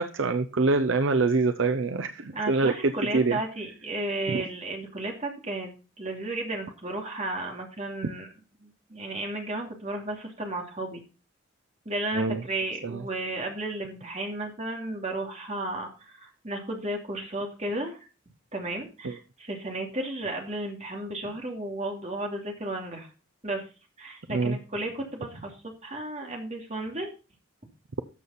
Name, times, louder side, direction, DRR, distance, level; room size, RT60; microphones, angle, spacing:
voice 1, 0.0-3.4 4.3-4.4 12.1-12.4 12.8-13.0 19.0-19.2 24.3-24.6, right 3 dB, 70° right, 8 dB, 0.7 m, -25 dB
voice 2, 2.3-5.7 6.0-8.3 8.6-11.0 11.8-18.0 18.5-23.1 23.4-23.6 24.0-27.1, right 2 dB, 35° right, 1 dB, 2.7 m, -33 dB
13.0 x 7.1 x 4.3 m, 0.33 s
head